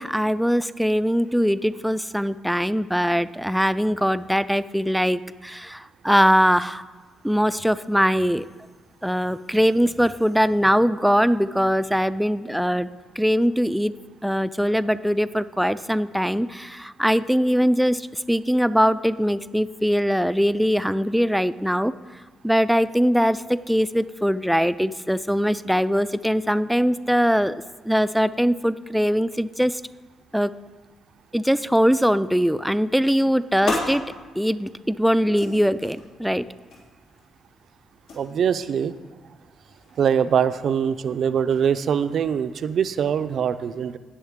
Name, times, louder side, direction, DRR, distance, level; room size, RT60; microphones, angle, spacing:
voice 1, 0.0-6.8 7.2-8.5 9.0-12.9 13.2-13.9 14.2-21.9 22.4-29.8 30.3-30.5 31.3-34.0 34.4-36.4, equal, ahead, 14 dB, 0.3 m, -21 dB
sound 1, 33.5-43.4, left 2 dB, 80° left, 3.4 m, -38 dB
voice 2, 38.2-38.9 40.0-44.0, right 8 dB, 60° right, 13 dB, 0.4 m, -23 dB
18.0 x 6.4 x 3.6 m, 1.3 s
cardioid pair, 90°, 0 cm